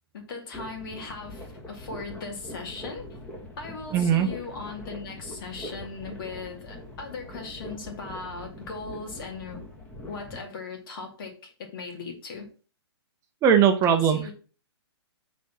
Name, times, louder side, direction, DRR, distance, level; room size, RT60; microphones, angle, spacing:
voice 1, 0.1-3.1 3.6-9.6 10.1-12.5 13.8-14.3, left 4 dB, 50° left, 2 dB, 2.5 m, -38 dB
sound 1, 0.5-10.4, left 1 dB, 10° left, 1.4 m, -42 dB
voice 2, 3.9-4.3 13.4-14.2, right 8 dB, 20° right, 6 dB, 0.7 m, -19 dB
6.3 x 4.1 x 5.8 m, 0.38 s
hypercardioid pair, 130°, 14 cm